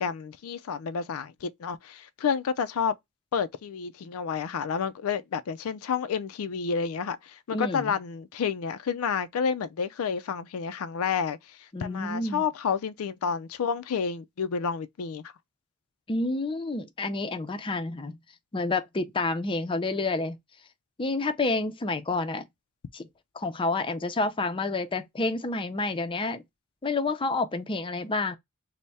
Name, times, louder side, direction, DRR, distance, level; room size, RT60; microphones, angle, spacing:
voice 1, 0.0-2.9 3.3-15.3, left 6 dB, 90° left, 0.4 m, -30 dB
voice 2, 7.5-8.0 11.7-12.4 16.1-18.2 18.5-20.4 21.0-22.4 22.9-23.1 23.3-26.4 26.8-28.4, left 3 dB, 25° left, 0.4 m, -29 dB
3.3 x 2.1 x 4.0 m
head